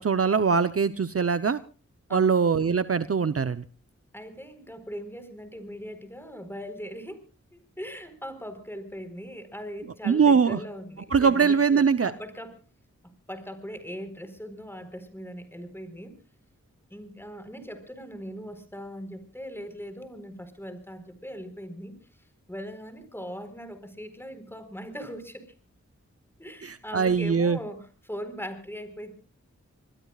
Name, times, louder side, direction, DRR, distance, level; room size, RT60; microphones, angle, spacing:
voice 1, 0.0-1.6 2.1-3.6 10.0-10.6 11.1-12.1 26.6-27.6, right 6 dB, 50° right, 13 dB, 0.8 m, -22 dB
voice 2, 4.1-7.2 7.5-12.5 13.3-16.2 16.9-21.9 22.5-25.5 26.4-29.1, equal, 10° left, 9 dB, 4.4 m, -40 dB
26.0 x 21.0 x 2.4 m, 0.35 s
cardioid pair, 50°, 30 cm